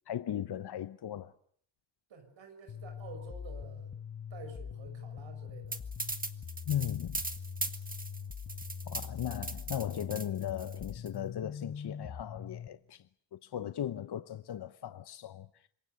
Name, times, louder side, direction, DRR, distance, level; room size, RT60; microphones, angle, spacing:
voice 1, 0.1-1.3 6.7-7.2 8.9-13.0 13.3-15.5, left 10 dB, 60° left, 1.0 m, -37 dB
voice 2, 2.1-3.9 4.3-5.8, right 5 dB, 90° right, 6.5 m, -50 dB
sound 1, 2.7-12.7, left 7 dB, 40° left, 1.2 m, -43 dB
sound 2, 5.7-11.1, right 3 dB, 20° right, 1.8 m, -39 dB
27.0 x 22.0 x 6.8 m
cardioid pair, 90°, 44 cm